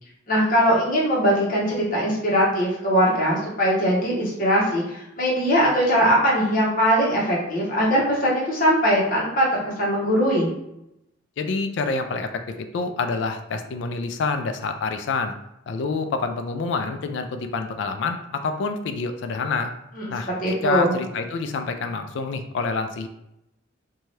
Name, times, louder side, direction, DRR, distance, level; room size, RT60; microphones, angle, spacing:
voice 1, 0.3-10.5 20.0-20.9, equal, 45° left, -5 dB, 0.9 m, -21 dB
voice 2, 11.4-12.3 12.6-15.3 15.7-19.7 20.1-20.3 20.6-23.1, left 4 dB, 65° left, 7 dB, 0.3 m, -27 dB
2.7 x 2.2 x 3.1 m, 0.85 s
head